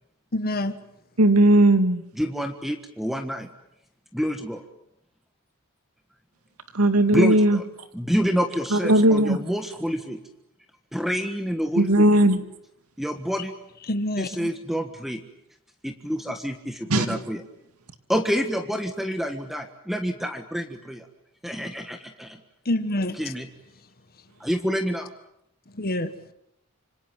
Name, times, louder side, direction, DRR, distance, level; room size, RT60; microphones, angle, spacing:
voice 1, 0.3-0.8 13.9-14.3 22.7-23.2 25.7-26.1, left 1 dB, 45° left, 1.6 m, -26 dB
voice 2, 1.2-2.0 6.7-7.6 8.7-9.4 11.8-12.4 16.9-17.1, right 1 dB, 85° right, 2.3 m, -17 dB
voice 3, 2.1-3.5 4.1-4.6 7.1-7.6 7.9-10.2 10.9-12.1 13.0-13.5 14.2-15.2 15.8-17.4 18.1-21.1 21.4-22.4 23.2-23.5 24.4-25.1, equal, ahead, 1.5 m, -28 dB
26.5 x 26.0 x 7.7 m
head